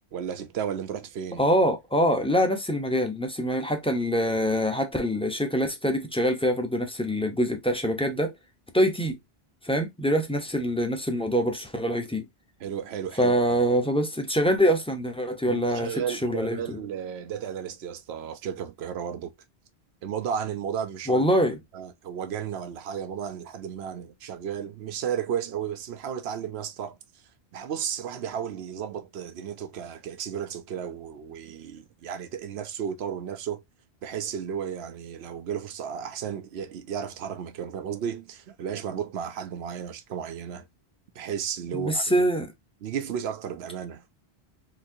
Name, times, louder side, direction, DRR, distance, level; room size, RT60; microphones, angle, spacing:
voice 1, 0.1-1.4 12.6-13.6 15.5-19.3 20.0-21.3 21.7-27.0 27.5-33.6 34.0-40.6 41.2-42.3 42.8-44.0, right 8 dB, 75° right, 0.9 m, -33 dB
voice 2, 1.4-8.3 8.7-9.2 9.6-12.2 13.2-16.8 21.1-21.6 41.7-42.5, equal, 5° left, 0.6 m, -24 dB
3.9 x 2.6 x 2.7 m
omnidirectional pair, 1.1 m